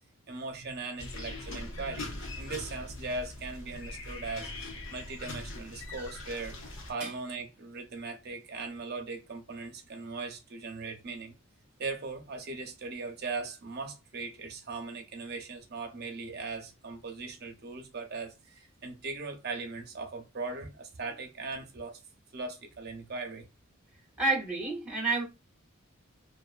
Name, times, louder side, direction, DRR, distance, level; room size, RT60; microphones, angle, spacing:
voice 1, 0.3-2.1 2.4-4.5 4.9-6.6 6.9-11.3 11.8-22.0 22.3-23.4, right 3 dB, 50° right, 0.6 m, -39 dB
sound 1, 1.0-6.9, left 2 dB, 60° left, 0.6 m, -41 dB
voice 2, 24.2-25.2, right 3 dB, 5° right, 0.7 m, -29 dB
2.4 x 2.3 x 2.4 m
head